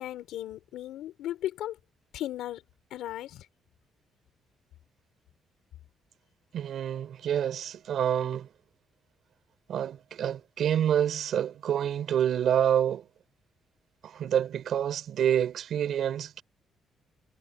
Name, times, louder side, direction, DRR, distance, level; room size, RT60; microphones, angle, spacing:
voice 1, 0.0-1.8 2.1-2.6 2.9-3.4, left 13 dB, 85° left, 4.7 m, -36 dB
voice 2, 6.5-8.5 9.7-13.0 14.0-16.4, right 9 dB, 65° right, 4.7 m, -27 dB
cardioid pair, 90°, 0 cm